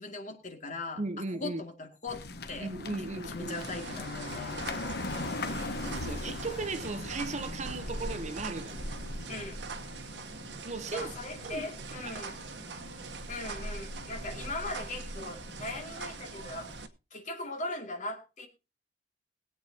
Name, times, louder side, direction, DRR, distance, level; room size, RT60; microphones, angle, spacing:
voice 1, 0.0-1.0 1.4-2.2 2.5-2.7 3.2-4.6 9.3-9.6 10.9-12.4 13.3-16.7 17.1-18.5, left 2 dB, 45° left, 2.3 m, -39 dB
voice 2, 1.0-1.6 2.6-3.6 5.1-5.7 6.0-8.8 10.6-11.1 11.4-11.7 12.0-12.2, right 3 dB, 40° right, 0.8 m, -37 dB
sound 1, 2.1-16.8, left 2 dB, 65° left, 1.1 m, -40 dB
sound 2, 3.5-16.9, right 5 dB, 75° right, 1.1 m, -44 dB
21.5 x 8.3 x 2.8 m
head